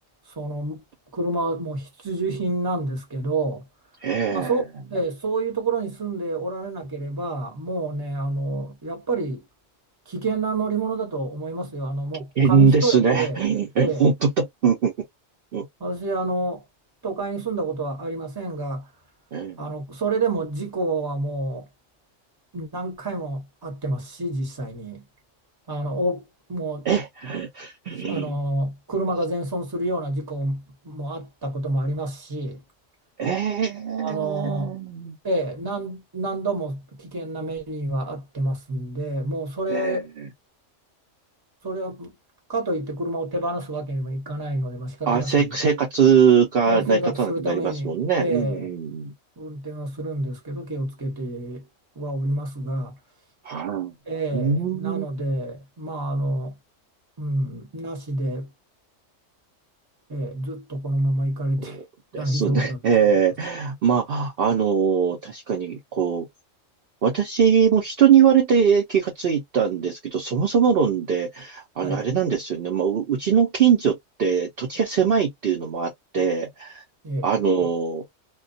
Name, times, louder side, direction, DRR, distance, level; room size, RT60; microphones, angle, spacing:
voice 1, 0.4-0.8 1.1-3.6 4.3-4.6 4.9-9.4 10.1-13.4 13.8-14.0 15.8-16.6 17.0-18.9 19.6-21.7 22.5-25.0 25.7-26.2 26.5-26.9 28.1-32.6 34.0-34.7 35.2-40.1 41.6-42.1 42.5-45.5 46.7-47.9 48.2-48.7 49.4-51.6 52.0-52.9 54.1-56.5 57.2-58.5 60.1-61.8 62.2-63.0 71.8-72.0 77.0-77.3, right 2 dB, 20° right, 0.9 m, -28 dB
voice 2, 4.0-4.6 12.4-14.9 15.5-15.7 19.3-19.7 26.9-28.4 33.2-35.2 39.7-40.3 45.1-49.1 53.4-53.9 54.3-55.1 61.6-61.8 62.1-66.3 67.0-76.8 77.2-78.0, right 7 dB, 55° right, 0.7 m, -22 dB
2.2 x 2.2 x 2.5 m
omnidirectional pair, 1.3 m